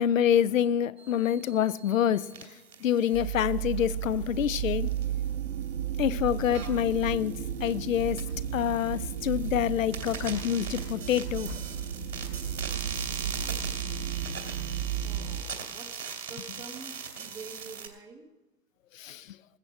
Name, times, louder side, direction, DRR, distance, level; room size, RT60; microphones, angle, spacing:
voice 1, 0.0-2.3 2.8-4.9 6.0-8.2 8.5-11.6 18.9-19.4, left 10 dB, 55° left, 0.6 m, -27 dB
sound 1, 1.0-17.9, right 6 dB, 75° right, 2.8 m, -42 dB
sound 2, 3.1-15.4, right 9 dB, 40° right, 1.0 m, -34 dB
voice 2, 15.0-18.3, right 4 dB, 5° right, 0.7 m, -47 dB
20.0 x 7.7 x 5.8 m
figure-of-eight pair, 130°, 49 cm